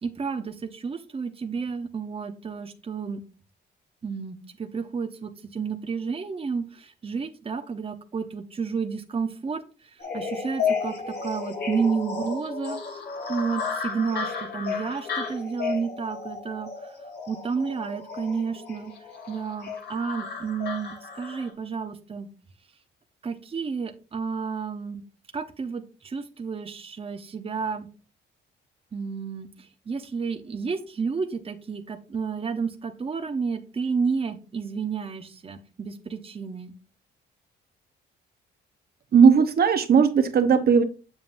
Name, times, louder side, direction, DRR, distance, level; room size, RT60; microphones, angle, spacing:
voice 1, 0.0-3.2 4.0-12.8 13.3-16.9 17.3-18.9 19.3-22.3 23.2-25.0 25.3-27.9 28.9-36.7, right 5 dB, 30° right, 6 dB, 0.8 m, -31 dB
sound 1, 10.0-21.5, left 5 dB, 55° left, 3.0 m, -33 dB
voice 2, 39.1-40.8, right 6 dB, 50° right, 8 dB, 1.0 m, -17 dB
7.4 x 7.3 x 2.6 m, 0.35 s
cardioid pair, 90°, 20 cm